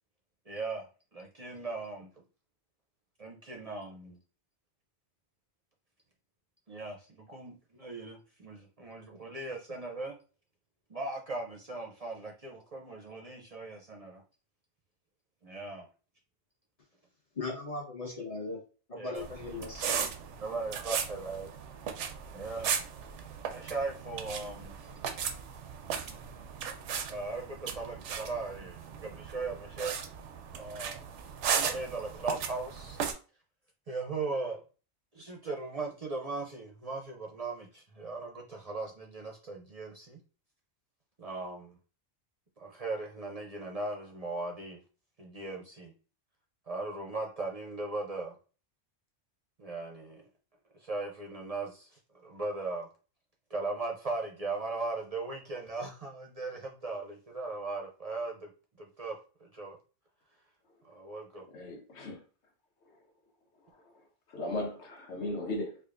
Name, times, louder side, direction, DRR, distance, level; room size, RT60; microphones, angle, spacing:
voice 1, 0.5-2.1 3.2-4.2 6.7-10.2 10.9-14.2 15.4-15.9 18.9-19.2 20.4-21.5 22.3-22.8 23.4-24.8 27.1-29.9 30.6-31.1 31.6-33.0 33.9-34.6 35.1-40.2 41.2-41.8 42.6-44.8 45.2-45.9 46.7-48.3 49.6-50.2 50.7-52.9 53.5-58.5 58.8-59.8 60.8-61.4, right 3 dB, 40° right, 0.6 m, -38 dB
voice 2, 17.3-18.6 18.9-20.0, left 3 dB, 35° left, 1.0 m, -38 dB
sound 1, 19.2-33.1, right 7 dB, 90° right, 0.9 m, -37 dB
voice 3, 61.5-62.2 63.7-63.9 64.3-65.8, left 1 dB, 70° left, 1.3 m, -37 dB
4.7 x 2.3 x 2.5 m
omnidirectional pair, 1.2 m